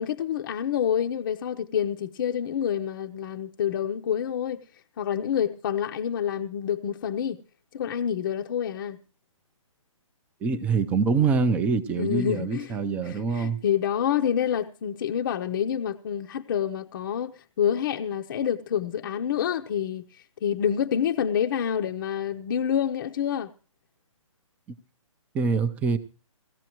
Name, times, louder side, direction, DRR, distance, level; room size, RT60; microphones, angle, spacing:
voice 1, 0.0-4.6 5.0-7.4 7.7-9.0 12.0-12.7 13.0-17.3 17.6-20.0 20.4-23.5, left 9 dB, 40° left, 0.7 m, -27 dB
voice 2, 10.4-13.6 25.3-26.0, right 5 dB, 10° right, 0.6 m, -25 dB
18.5 x 14.5 x 3.0 m
hypercardioid pair, 155°, 17 cm